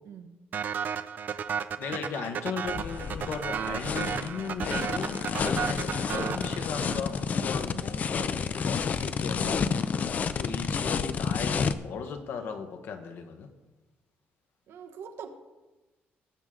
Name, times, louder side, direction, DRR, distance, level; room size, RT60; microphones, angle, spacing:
voice 1, 0.1-0.4 5.4-5.5 14.7-15.3, right 7 dB, 75° right, 1.2 m, -43 dB
sound 1, 0.5-7.2, right 7 dB, 45° right, 0.5 m, -33 dB
voice 2, 1.8-9.6 10.1-13.5, left 6 dB, 65° left, 1.2 m, -37 dB
sound 2, 2.6-11.7, left 6 dB, 40° left, 0.5 m, -30 dB
19.0 x 7.8 x 3.7 m
cardioid pair, 160°, 4 cm